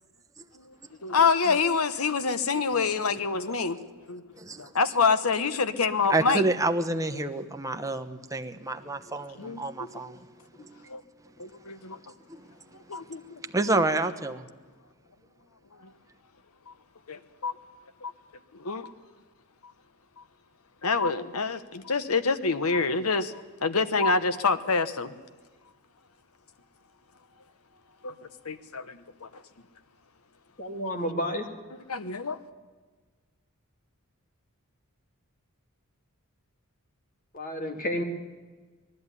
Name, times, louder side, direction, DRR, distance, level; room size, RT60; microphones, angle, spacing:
voice 1, 1.0-3.8 4.1-4.2 4.6-6.4 9.4-10.0 10.9-11.0 11.4-12.0 12.9-13.4 13.7-13.8 16.7-16.8 17.1-17.5 18.0-18.1 18.5-18.9 20.8-25.1 28.0-28.1 28.4-29.4 31.9-32.4, left 4 dB, 80° left, 12 dB, 1.1 m, -27 dB
voice 2, 6.1-10.2 10.6-10.8 12.3-12.4 12.9-13.0 13.3-14.5, right 2 dB, 15° right, 7 dB, 1.0 m, -29 dB
voice 3, 30.6-31.5 37.3-38.0, equal, 40° left, 5 dB, 2.3 m, -30 dB
19.5 x 13.5 x 9.8 m, 1.4 s
head